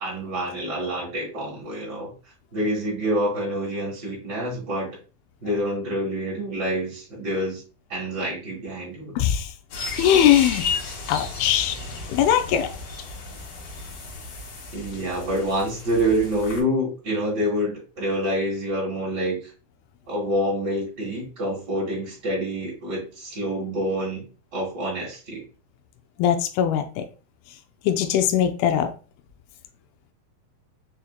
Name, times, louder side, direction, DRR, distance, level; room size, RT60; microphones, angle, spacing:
voice 1, 0.0-2.1 2.5-5.0 5.4-7.6 7.9-9.2 14.7-19.4 20.1-24.2 24.5-25.4, equal, 90° right, -4 dB, 0.9 m, -27 dB
voice 2, 9.2-9.5 10.0-10.7 11.1-11.8 12.1-12.7 26.2-27.0 27.8-28.9, left 10 dB, 85° left, 6 dB, 2.3 m, -20 dB
sound 1, 9.7-16.6, left 4 dB, 70° left, 2.8 m, -34 dB
6.2 x 2.8 x 2.2 m, 0.34 s
omnidirectional pair, 4.3 m